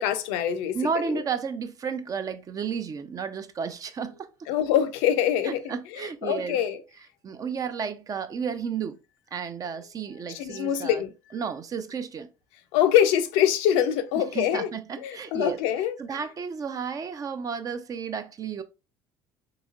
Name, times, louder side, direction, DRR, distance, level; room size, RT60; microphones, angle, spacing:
voice 1, 0.0-0.8 4.5-6.8 10.3-11.1 12.7-14.7 15.0-15.9, left 10 dB, 75° left, 0.4 m, -24 dB
voice 2, 0.7-4.5 5.4-6.6 7.2-9.0 9.3-11.0 11.3-12.3 14.2-15.6 16.0-18.6, right 6 dB, 40° right, 0.5 m, -32 dB
3.9 x 2.8 x 2.3 m
hypercardioid pair, 65°, 10 cm